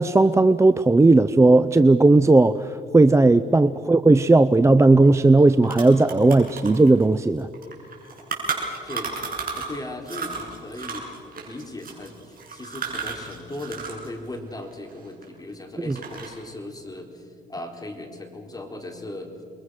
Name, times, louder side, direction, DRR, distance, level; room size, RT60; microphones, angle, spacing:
voice 1, 0.0-7.5, right 2 dB, 15° right, 13 dB, 0.6 m, -16 dB
sound 1, 5.0-5.1 5.4-9.8 10.0-14.1 14.3-15.5 15.8-16.5, right 5 dB, 45° right, 7.3 m, -33 dB
voice 2, 8.8-9.3 9.5-11.1 11.5-19.3, left 1 dB, 20° left, 3 dB, 4.0 m, -37 dB
28.0 x 22.5 x 6.4 m, 2.5 s
cardioid pair, 90°, 20 cm